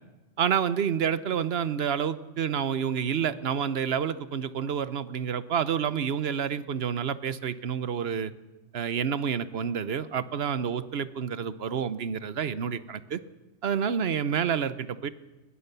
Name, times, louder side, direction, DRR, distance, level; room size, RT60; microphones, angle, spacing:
voice 1, 0.4-8.3 8.7-13.2 13.6-15.1, right 7 dB, 55° right, 14 dB, 1.1 m, -29 dB
21.5 x 21.5 x 6.9 m, 1.1 s
omnidirectional pair, 1.3 m